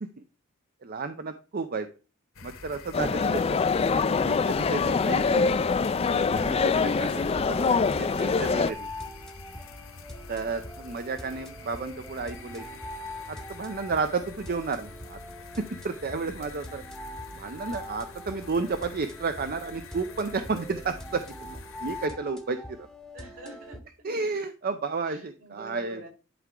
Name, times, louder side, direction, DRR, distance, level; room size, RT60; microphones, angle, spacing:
voice 1, 0.8-1.9 2.4-3.6 3.9-5.4 6.1-8.9 10.3-12.6 13.3-15.2 15.6-16.8 17.3-22.9 24.0-26.0, right 4 dB, 45° right, 9 dB, 0.5 m, -32 dB
sound 1, 2.3-22.1, left 3 dB, 70° left, 1.3 m, -46 dB
sound 2, 2.9-8.7, left 4 dB, 30° left, 0.3 m, -24 dB
sound 3, 7.4-23.8, left 1 dB, ahead, 0.9 m, -43 dB
voice 2, 7.7-8.1 17.6-17.8 23.1-23.8 25.0-26.1, right 2 dB, 70° right, 1 dB, 3.7 m, -47 dB
11.0 x 4.7 x 3.7 m, 0.33 s
head